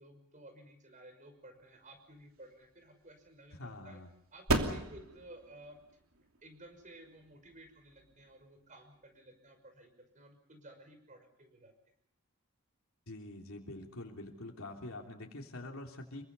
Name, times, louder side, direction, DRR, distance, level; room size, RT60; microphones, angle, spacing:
voice 1, 0.0-4.0 4.3-5.8 6.4-11.7, right 1 dB, 35° right, 7 dB, 5.9 m, -55 dB
sound 1, 1.8-9.2, right 2 dB, 75° right, 3.0 m, -39 dB
voice 2, 3.5-4.1 13.1-16.2, left 1 dB, 75° left, 1 dB, 3.3 m, -45 dB
28.0 x 23.5 x 5.5 m, 0.72 s
head